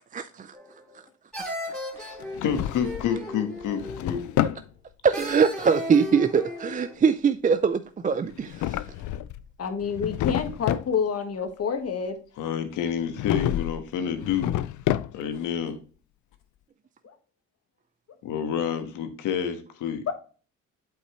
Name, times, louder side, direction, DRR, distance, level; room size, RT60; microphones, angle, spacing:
voice 1, 0.1-0.6 1.4-1.8 4.4-4.5 5.0-8.8, right 6 dB, 25° right, 0.4 m, -23 dB
sound 1, 0.5-1.0 1.3-4.4 5.1-6.9, left 1 dB, ahead, 3.2 m, -36 dB
voice 2, 2.0-4.2 12.4-14.5 15.1-15.8 18.2-20.0, left 8 dB, 90° left, 1.4 m, -29 dB
Drawer open or close, 2.2-3.2 3.6-4.7 8.3-9.4 9.8-10.9 13.1-13.8 14.2-15.4, left 13 dB, 75° left, 0.5 m, -29 dB
voice 3, 9.6-12.2 17.0-17.1 20.1-20.2, left 6 dB, 55° left, 1.5 m, -28 dB
8.0 x 5.5 x 3.1 m
cardioid pair, 90°, 30 cm